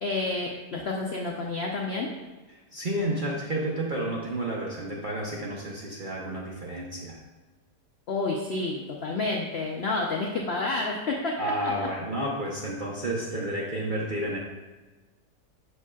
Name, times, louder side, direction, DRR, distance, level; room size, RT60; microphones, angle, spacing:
voice 1, 0.0-2.1 8.1-11.9, left 3 dB, 65° left, 0 dB, 0.6 m, -30 dB
voice 2, 2.7-7.2 11.4-14.4, right 1 dB, 45° right, -3 dB, 0.7 m, -31 dB
7.2 x 6.4 x 2.3 m, 1.2 s
omnidirectional pair, 1.8 m